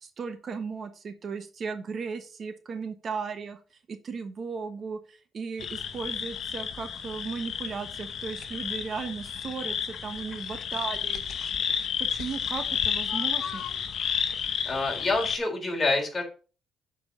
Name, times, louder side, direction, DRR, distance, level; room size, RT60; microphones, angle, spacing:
voice 1, 0.0-11.3 12.0-13.7, right 5 dB, 50° right, 9 dB, 1.2 m, -36 dB
sound 1, 5.6-15.4, left 7 dB, 65° left, 1.0 m, -31 dB
voice 2, 14.7-16.2, left 3 dB, 25° left, 1 dB, 3.6 m, -27 dB
7.4 x 4.8 x 6.3 m, 0.36 s
cardioid pair, 90°, 0 cm